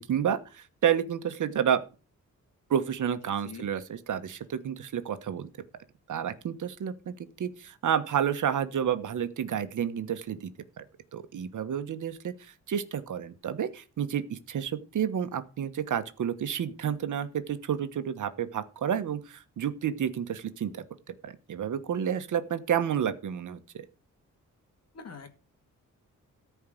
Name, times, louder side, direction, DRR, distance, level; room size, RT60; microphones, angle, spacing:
voice 1, 0.1-1.8 2.7-5.5 6.1-10.5 10.8-10.9 11.1-20.8 21.2-23.8, right 9 dB, 70° right, 10 dB, 1.3 m, -30 dB
voice 2, 24.9-25.3, left 5 dB, 50° left, 7 dB, 2.1 m, -43 dB
14.0 x 4.7 x 7.7 m, 0.33 s
wide cardioid pair, 135°, 32 cm